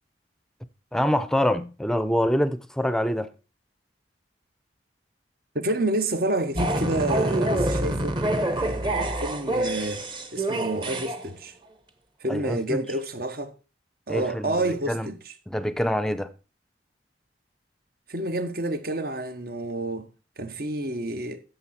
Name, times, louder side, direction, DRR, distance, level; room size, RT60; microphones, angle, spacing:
voice 1, 0.9-3.3 12.3-12.8 14.1-14.6 14.9-15.1 15.5-16.3, equal, 5° left, 0.6 m, -25 dB
voice 2, 5.5-10.0 10.3-11.6 12.2-13.6 14.1-15.3 18.1-21.4, right 1 dB, 55° right, 1.2 m, -29 dB
sound 1, 6.6-11.3, right 1 dB, 25° right, 1.1 m, -26 dB
15.0 x 6.5 x 4.3 m
head